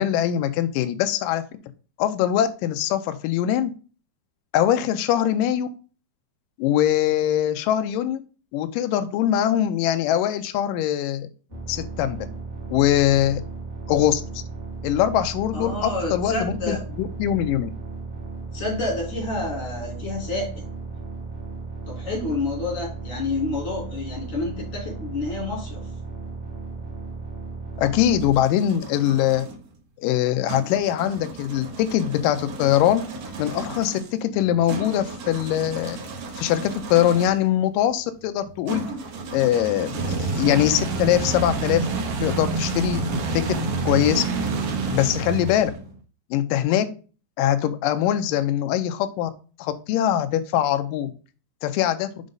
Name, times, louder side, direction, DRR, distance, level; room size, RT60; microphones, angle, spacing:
voice 1, 0.0-1.4 2.0-3.7 4.5-5.7 6.6-8.2 8.5-11.3 11.7-12.2 12.7-13.4 13.9-14.4 14.8-17.7 27.8-29.5 30.0-33.0 33.4-36.0 36.4-38.8 39.3-41.9 42.2-43.5 43.9-44.3 44.9-45.7 46.3-46.9 47.4-49.3 49.6-51.1 51.6-52.1, left 11 dB, 85° left, 8 dB, 1.9 m, -22 dB
sound 1, 11.5-28.4, right 4 dB, 35° right, 1.0 m, -35 dB
voice 2, 15.5-16.8 18.5-20.7 21.9-25.8, left 2 dB, 35° left, -4 dB, 4.2 m, -29 dB
sound 2, 27.8-29.6 30.5-37.5 38.7-46.0, right 3 dB, 75° right, 1.5 m, -30 dB
6.0 x 5.3 x 3.8 m, 0.36 s
omnidirectional pair, 4.6 m